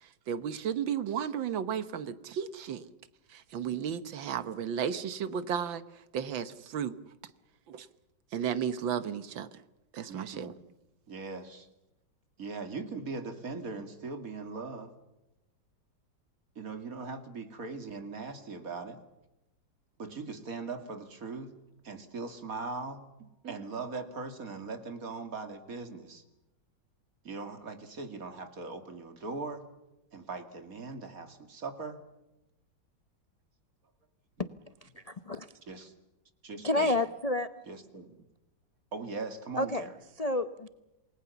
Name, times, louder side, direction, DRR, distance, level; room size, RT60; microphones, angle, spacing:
voice 1, 0.0-2.9 3.3-5.8 6.1-6.9 7.7-7.9 8.3-9.5 9.9-10.5, right 8 dB, 80° right, 13 dB, 1.9 m, -34 dB
voice 2, 10.1-10.6 11.1-11.7 12.4-14.9 16.6-19.0 20.0-21.5 21.8-26.2 27.2-29.6 30.1-32.0 35.7-35.9 36.4-37.0 37.7-38.1 38.9-39.9, right 3 dB, 45° right, 8 dB, 2.6 m, -40 dB
voice 3, 34.8-35.5 36.6-37.5 39.6-39.9 40.2-40.7, left 2 dB, 65° left, 11 dB, 0.3 m, -30 dB
28.5 x 20.0 x 7.0 m, 0.93 s
omnidirectional pair, 2.1 m